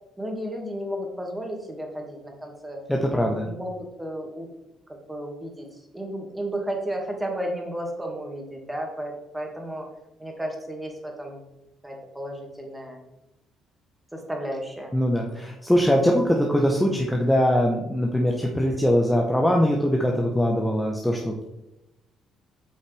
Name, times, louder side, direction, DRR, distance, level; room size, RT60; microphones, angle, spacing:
voice 1, 0.2-4.5 5.1-5.7 5.9-9.9 10.2-11.4 11.8-13.0 14.1-14.9, equal, 10° right, 1 dB, 2.1 m, -33 dB
voice 2, 2.9-3.5 14.9-21.4, equal, 5° left, 0 dB, 1.1 m, -22 dB
8.1 x 5.5 x 3.4 m, 0.92 s
supercardioid pair, 60°, 0 cm